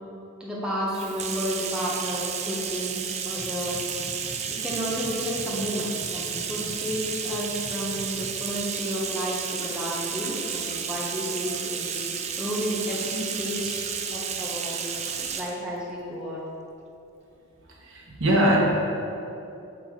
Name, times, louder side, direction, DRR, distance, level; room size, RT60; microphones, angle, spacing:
voice 1, 0.4-3.7 4.5-11.9 12.4-13.8 14.1-14.8 15.3-16.4, equal, 5° right, -6 dB, 1.1 m, -31 dB
Bathtub (filling or washing), 0.9-15.6, right 7 dB, 30° right, 0.3 m, -32 dB
sound 1, 3.3-8.4, equal, 70° left, 1.5 m, -43 dB
voice 2, 17.8-18.6, equal, 55° right, -4 dB, 1.3 m, -21 dB
7.6 x 3.7 x 4.8 m, 2.8 s
head